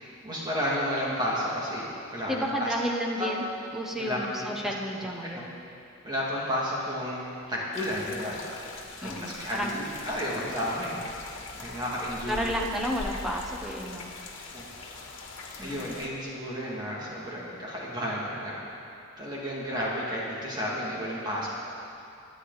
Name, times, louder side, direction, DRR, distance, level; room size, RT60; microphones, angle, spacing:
voice 1, 0.0-2.7 3.2-3.3 4.0-4.5 5.3-5.4 6.0-8.4 9.0-11.0 11.5-12.5 14.5-14.7 15.6-18.6 19.2-21.5, equal, 20° right, -6 dB, 2.4 m, -32 dB
voice 2, 2.2-3.4 3.7-5.5 9.0-9.7 12.3-14.1 15.6-16.0, equal, ahead, 0 dB, 1.1 m, -32 dB
sound 1, 7.7-16.1, left 3 dB, 65° left, 1.8 m, -42 dB
23.0 x 9.8 x 4.1 m, 2.6 s
head